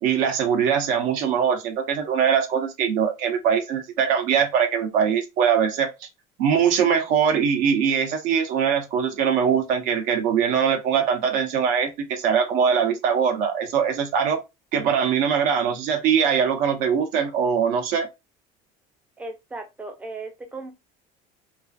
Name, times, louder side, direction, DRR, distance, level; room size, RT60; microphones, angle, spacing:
voice 1, 0.0-5.9 6.4-14.4 14.7-18.1, right 7 dB, 55° right, 0.6 m, -22 dB
voice 2, 19.2-20.8, right 2 dB, 10° right, 0.4 m, -36 dB
2.4 x 2.4 x 2.3 m
cardioid pair, 170°, 16 cm